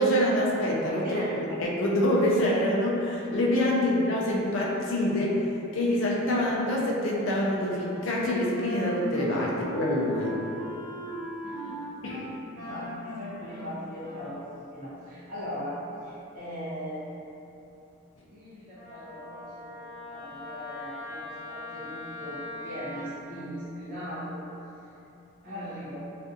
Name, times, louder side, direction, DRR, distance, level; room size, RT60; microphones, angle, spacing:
voice 1, 0.0-5.4 5.7-10.4 12.0-12.2, left 1 dB, 75° left, -4 dB, 0.5 m, -26 dB
voice 2, 1.0-1.4 11.4-11.9 12.5-17.3 18.3-24.4 24.8-24.9 25.4-26.0, equal, 40° right, -11 dB, 0.8 m, -39 dB
Wind instrument woodwind instrument, 7.1-14.6, equal, 80° right, 0.8 m, -39 dB
Wind instrument woodwind instrument 2, 18.8-23.1, left 2 dB, 20° right, 1.0 m, -41 dB
2.5 x 2.4 x 2.5 m, 2.8 s
head